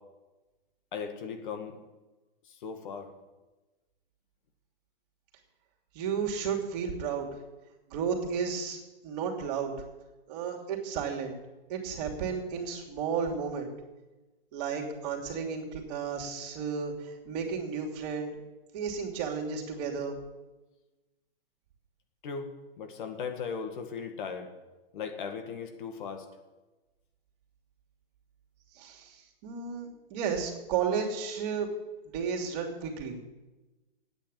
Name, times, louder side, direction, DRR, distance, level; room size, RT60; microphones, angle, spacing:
voice 1, 0.9-1.8 2.5-3.1 22.2-22.5 22.8-24.5 24.9-26.3, left 6 dB, 55° left, 6 dB, 2.0 m, -37 dB
voice 2, 5.9-7.3 7.9-9.7 10.3-11.4 11.7-13.7 14.5-18.4 18.7-20.2 28.7-31.7 32.1-33.2, right 6 dB, 45° right, 1 dB, 2.8 m, -33 dB
9.1 x 9.0 x 8.8 m, 1.1 s
hypercardioid pair, 125°, 29 cm